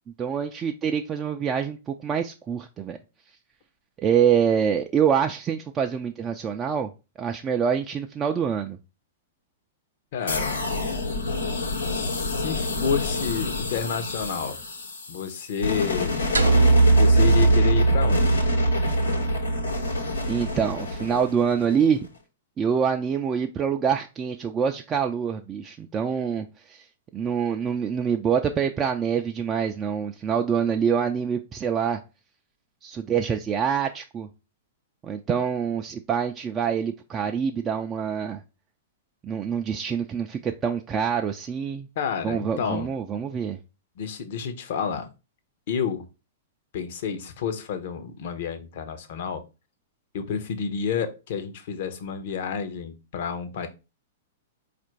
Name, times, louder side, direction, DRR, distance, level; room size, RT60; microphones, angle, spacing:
voice 1, 0.2-3.0 4.0-6.9 7.2-8.8 20.3-22.1 22.6-26.8 27.1-32.0 32.8-34.3 35.0-38.4 39.2-41.9 42.2-43.6, right 7 dB, 25° right, 4 dB, 0.3 m, -25 dB
voice 2, 10.1-10.6 11.8-14.6 15.1-16.2 16.9-18.4 42.0-42.9 44.0-45.1 45.7-46.0 46.7-49.4 50.1-53.7, left 6 dB, 55° left, 8 dB, 0.7 m, -30 dB
sound 1, 10.3-22.1, left 3 dB, 85° left, 1.1 m, -29 dB
sound 2, 16.3-20.7, right 3 dB, 85° right, 0.5 m, -20 dB
4.3 x 2.5 x 4.3 m, 0.29 s
figure-of-eight pair, 110°, 0 cm